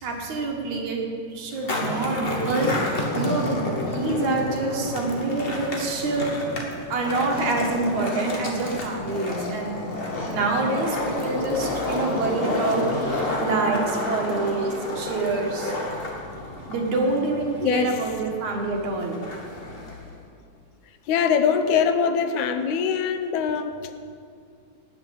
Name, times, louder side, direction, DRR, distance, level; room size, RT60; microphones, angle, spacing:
voice 1, 0.0-1.0 1.3-9.7 10.3-15.7 16.7-19.2, right 3 dB, 75° right, 1 dB, 3.2 m, -26 dB
Skateboard, 1.5-20.2, left 1 dB, 30° left, 1.2 m, -30 dB
voice 2, 3.8-4.4 17.6-18.0 21.1-23.9, left 6 dB, 80° left, 8 dB, 2.2 m, -23 dB
19.0 x 6.6 x 7.7 m, 2.3 s
omnidirectional pair, 3.3 m